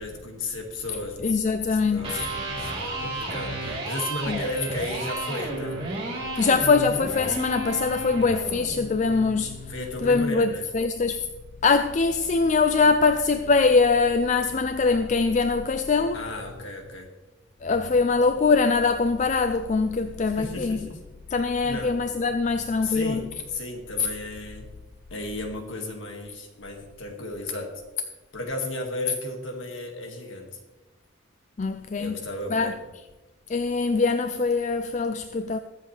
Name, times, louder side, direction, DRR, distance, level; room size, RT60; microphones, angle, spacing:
voice 1, 0.0-1.2 1.7-5.8 9.7-10.7 16.1-17.1 20.2-21.0 21.3-21.9 22.8-24.7 25.1-27.7 28.3-30.6 32.0-32.7, left 2 dB, 65° left, 2.0 m, -34 dB
voice 2, 1.2-2.3 4.3-4.4 6.4-9.7 10.0-11.3 11.6-16.2 17.6-20.8 21.3-23.3 31.6-32.2 32.5-32.7 33.5-35.6, left 4 dB, 35° left, 0.4 m, -23 dB
Electric guitar, 2.0-10.0, right 2 dB, 25° right, 3.3 m, -33 dB
22.0 x 7.5 x 3.3 m
head